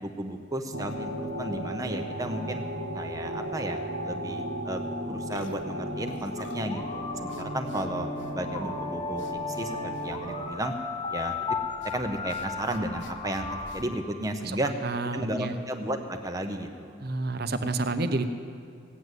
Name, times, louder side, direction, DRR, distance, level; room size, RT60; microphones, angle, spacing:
voice 1, 0.0-2.6 2.9-8.1 8.3-10.7 11.1-11.4 11.8-14.7 15.1-17.0, right 1 dB, 15° right, 5 dB, 0.8 m, -34 dB
sound 1, 0.7-10.5, equal, 65° right, 1.2 m, -36 dB
sound 2, 4.7-4.9 5.3-6.7 7.3-7.9 8.2-8.3 9.2-9.7 9.9-10.1 11.8-11.9 12.3-13.8, left 2 dB, 60° left, 1.0 m, -48 dB
sound 3, 6.6-13.8, left 3 dB, 25° left, 1.3 m, -35 dB
voice 2, 14.8-15.6 17.0-18.3, right 2 dB, 50° right, 10 dB, 0.8 m, -29 dB
16.5 x 9.3 x 8.2 m, 2.4 s
head